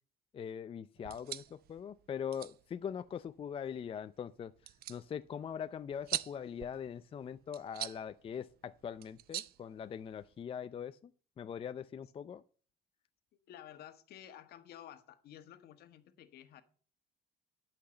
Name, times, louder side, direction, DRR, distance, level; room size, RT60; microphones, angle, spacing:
voice 1, 0.3-4.5 4.9-11.1 11.4-12.4, left 8 dB, 35° left, 0.4 m, -42 dB
sound 1, 1.0-10.4, right 13 dB, 65° right, 0.6 m, -46 dB
voice 2, 13.3-16.6, left 11 dB, 70° left, 1.4 m, -53 dB
11.5 x 5.9 x 6.9 m
cardioid pair, 110°, 17 cm